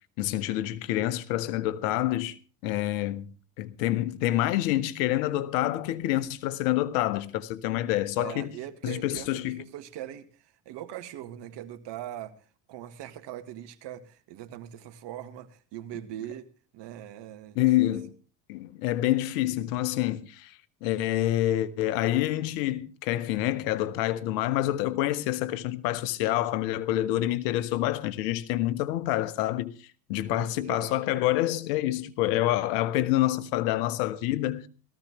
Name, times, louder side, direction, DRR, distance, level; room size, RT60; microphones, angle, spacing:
voice 1, 0.2-2.4 2.6-3.3 3.6-8.5 8.8-9.6 17.5-18.1 18.5-34.7, left 14 dB, 70° left, 1.4 m, -27 dB
voice 2, 8.2-12.3 12.7-17.6 30.3-31.4, right 12 dB, 60° right, 2.1 m, -41 dB
18.0 x 14.5 x 3.1 m
hypercardioid pair, 75°, 49 cm